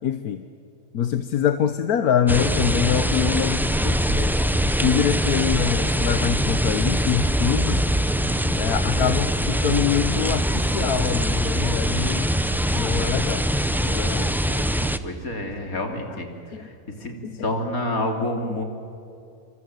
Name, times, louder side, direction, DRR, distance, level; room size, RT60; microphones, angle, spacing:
voice 1, 0.0-0.4 0.9-4.3 4.8-7.9 8.6-12.3 12.7-13.5 13.8-14.3 14.8-14.9 16.5-16.7 17.2-17.4 18.5-18.6, left 9 dB, 85° left, 10 dB, 1.4 m, -24 dB
sound 1, 2.3-15.0, equal, ahead, 0.5 m, -23 dB
voice 2, 15.0-16.3 16.6-16.7 17.0-17.2 17.4-18.6, left 1 dB, 70° left, 4 dB, 3.5 m, -28 dB
27.5 x 26.0 x 7.9 m, 2.6 s
omnidirectional pair, 1.6 m